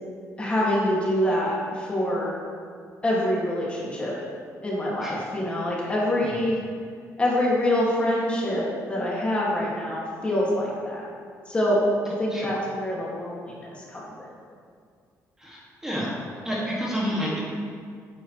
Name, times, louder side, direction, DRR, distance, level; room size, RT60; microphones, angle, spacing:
voice 1, 0.4-2.3 3.0-4.1 4.6-6.6 7.2-11.0 11.5-11.8 12.0-14.1, left 1 dB, 20° left, -5 dB, 2.2 m, -25 dB
voice 2, 15.4-16.1 16.4-17.4, equal, 10° right, -6 dB, 2.1 m, -29 dB
12.5 x 9.5 x 3.2 m, 2.1 s
cardioid pair, 155°, 6 cm